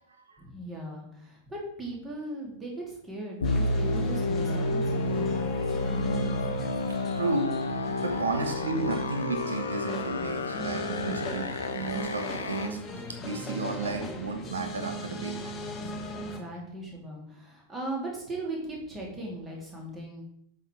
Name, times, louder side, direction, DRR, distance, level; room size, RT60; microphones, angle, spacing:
voice 1, 0.4-6.3 10.9-11.5 13.8-14.1 16.1-20.2, right 1 dB, 15° right, -2 dB, 2.5 m, -39 dB
sound 1, 3.4-12.7, left 2 dB, 70° left, 0.8 m, -30 dB
sound 2, 3.4-16.4, equal, 20° left, 1.2 m, -40 dB
voice 2, 7.1-7.5 7.7-11.5 11.7-12.8 13.2-15.5, right 3 dB, 70° right, 6 dB, 1.2 m, -32 dB
7.9 x 4.8 x 4.4 m, 0.72 s
figure-of-eight pair, 90°, 0 cm